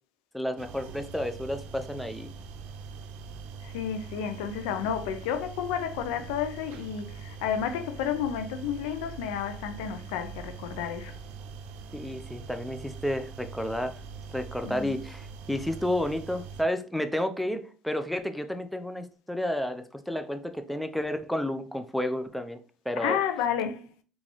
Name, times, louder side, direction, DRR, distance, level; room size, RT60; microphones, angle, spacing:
voice 1, 0.3-2.3 11.9-14.0 14.3-22.6 22.9-23.2, left 1 dB, ahead, 0.5 m, -31 dB
sound 1, 0.6-16.6, right 5 dB, 75° right, 0.6 m, -43 dB
voice 2, 3.6-11.2 14.6-15.0 23.0-23.9, left 8 dB, 85° left, 0.4 m, -31 dB
3.8 x 2.4 x 3.0 m
supercardioid pair, 80°, 3 cm